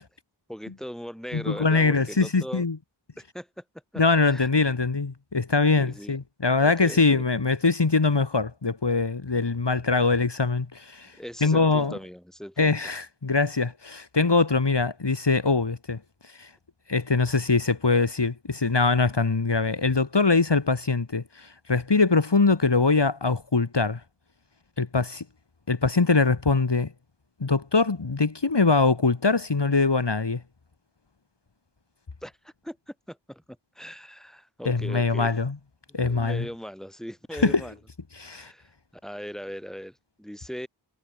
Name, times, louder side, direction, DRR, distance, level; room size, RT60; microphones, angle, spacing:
voice 1, 0.5-2.6 3.2-3.6 3.9-4.5 5.7-6.2 6.6-7.2 11.2-12.8 32.2-33.4 33.7-35.3 35.9-37.8 38.3-38.7 39.0-40.7, equal, ahead, 5.2 m, -39 dB
voice 2, 1.3-2.8 4.0-11.1 11.4-12.0 12.6-16.0 16.4-16.5 16.9-24.0 24.8-25.2 25.7-26.9 27.4-30.4 34.7-35.5 35.9-36.5 37.4-37.6 38.2-38.5, left 4 dB, 60° left, 2.0 m, -23 dB
wide cardioid pair, 40°, 47 cm